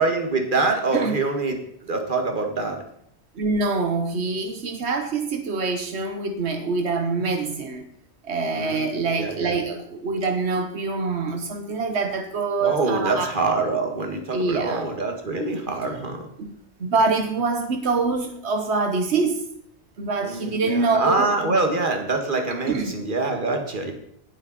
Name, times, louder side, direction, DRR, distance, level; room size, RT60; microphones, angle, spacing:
voice 1, 0.0-2.8 8.5-9.5 12.6-16.3 20.2-23.9, right 3 dB, 50° right, 4 dB, 2.0 m, -25 dB
voice 2, 3.3-7.9 8.2-13.3 14.3-14.9 16.4-16.5 16.8-19.4 20.0-21.5 22.7-23.0, right 3 dB, 90° right, 6 dB, 1.4 m, -25 dB
19.0 x 7.6 x 4.2 m, 0.70 s
omnidirectional pair, 1.1 m